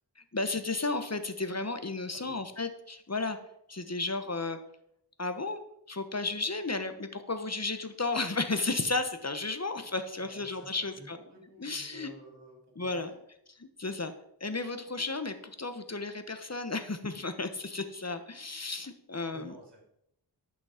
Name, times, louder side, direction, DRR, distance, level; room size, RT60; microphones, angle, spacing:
voice 1, 0.3-3.4 3.7-4.6 5.2-5.6 5.9-11.2 11.6-12.1 12.8-13.1 13.8-14.1 14.4-19.6, left 3 dB, 35° left, 8 dB, 1.1 m, -33 dB
voice 2, 10.2-13.2 19.3-19.8, right 1 dB, 70° right, 0 dB, 3.1 m, -52 dB
11.5 x 6.2 x 5.0 m, 0.75 s
wide cardioid pair, 45°, 43 cm